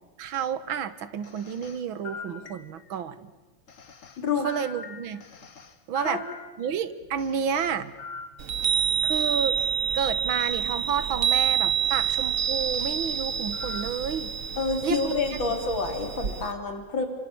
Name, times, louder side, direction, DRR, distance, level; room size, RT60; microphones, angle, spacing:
voice 1, 0.2-3.3 4.4-5.2 5.9-6.2 6.6-7.9 9.0-9.6 9.9-14.3 14.8-15.2, right 7 dB, 70° right, 14 dB, 2.0 m, -30 dB
sound 1, 1.2-3.0 3.7-6.8 7.2-9.8 10.4-10.6 11.2-11.4 11.8-13.0 13.5-14.1, left 5 dB, 40° left, 1.7 m, -44 dB
voice 2, 4.2-4.5 6.0-6.2 14.6-17.1, left 4 dB, 60° left, 5 dB, 4.1 m, -28 dB
Chime, 8.4-16.5, right 8 dB, 45° right, 1.3 m, -27 dB
27.0 x 25.5 x 8.6 m, 1.2 s
omnidirectional pair, 2.3 m